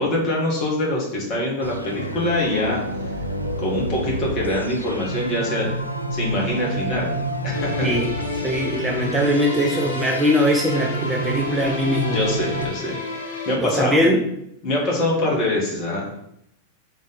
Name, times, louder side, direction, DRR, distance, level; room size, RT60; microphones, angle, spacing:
voice 1, 0.0-2.8 3.6-5.7 6.1-7.1 7.4-7.9 12.1-13.0 13.4-14.0 14.6-16.1, left 1 dB, 40° left, -3 dB, 1.7 m, -24 dB
sound 1, 1.6-12.6, right 1 dB, 85° right, 0.5 m, -29 dB
sound 2, 7.5-13.6, left 2 dB, 65° left, 0.8 m, -32 dB
voice 2, 8.4-12.2 13.6-14.2, equal, 10° right, 0 dB, 0.6 m, -21 dB
3.6 x 3.6 x 4.0 m, 0.76 s
figure-of-eight pair, 90°, 0 cm